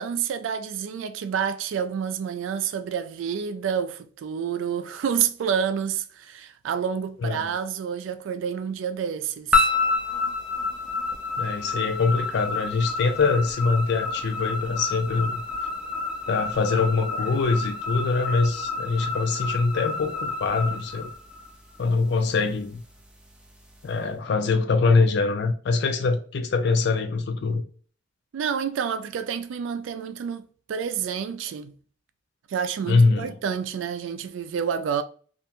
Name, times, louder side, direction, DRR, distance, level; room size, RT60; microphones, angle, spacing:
voice 1, 0.0-9.7 28.3-31.7 32.5-35.0, right 7 dB, 85° right, 0.3 m, -29 dB
sound 1, 9.5-21.8, left 3 dB, 5° right, 0.4 m, -29 dB
voice 2, 11.4-15.4 16.3-21.1 21.8-22.8 23.8-27.6 32.8-33.3, left 4 dB, 60° left, 0.4 m, -23 dB
2.5 x 2.1 x 2.8 m
head